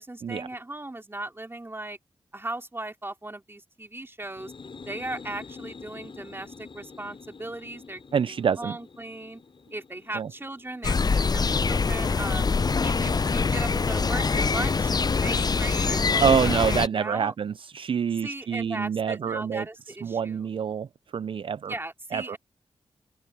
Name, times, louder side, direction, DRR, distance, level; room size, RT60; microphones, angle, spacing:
voice 1, 0.0-2.0 2.3-4.5 4.9-9.4 9.7-12.5 12.8-17.3 18.2-20.5 21.7-22.4, right 2 dB, 20° right, 3.3 m, -37 dB
sound 1, 4.2-11.7, left 4 dB, 55° left, 7.0 m, -46 dB
voice 2, 8.1-8.7 10.1-10.3 16.2-19.7 20.0-20.9 21.1-21.7 22.1-22.4, right 7 dB, 60° right, 0.4 m, -26 dB
sound 2, 10.8-16.9, left 4 dB, 40° left, 0.5 m, -24 dB
open air
cardioid pair, 45°, 10 cm